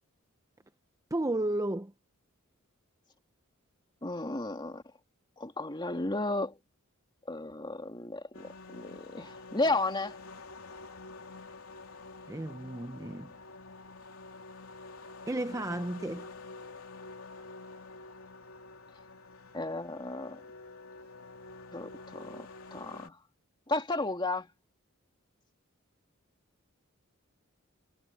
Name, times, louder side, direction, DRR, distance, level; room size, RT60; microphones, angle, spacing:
voice 1, 1.1-1.9 12.3-13.3 15.3-16.3, right 1 dB, 15° right, 0.7 m, -33 dB
voice 2, 4.0-4.8 5.4-6.6 7.3-10.2 19.5-20.4 21.7-23.2 23.7-24.5, left 2 dB, 20° left, 2.5 m, -33 dB
sound 1, 8.3-23.1, left 3 dB, 85° left, 3.0 m, -48 dB
head